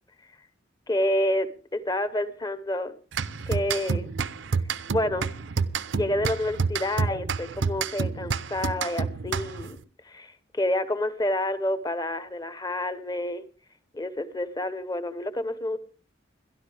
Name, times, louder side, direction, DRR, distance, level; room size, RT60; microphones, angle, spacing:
voice 1, 0.9-2.9 3.5-4.1 4.9-5.3 5.9-9.8 10.0-13.4 13.9-15.8, left 1 dB, 20° left, 12 dB, 0.9 m, -28 dB
sound 1, 3.1-9.8, right 5 dB, 70° right, 0.6 m, -29 dB
21.5 x 12.5 x 3.4 m, 0.39 s
head